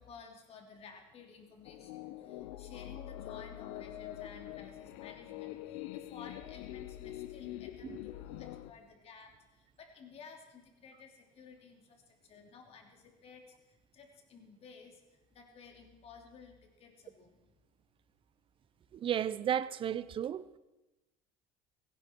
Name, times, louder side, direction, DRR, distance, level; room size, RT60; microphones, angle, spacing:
voice 1, 0.0-17.4, left 5 dB, 40° left, 3.0 m, -54 dB
sound 1, 1.6-8.7, left 14 dB, 90° left, 0.8 m, -45 dB
voice 2, 18.9-20.4, right 9 dB, 35° right, 0.7 m, -33 dB
17.0 x 16.5 x 4.6 m
cardioid pair, 125°, 15 cm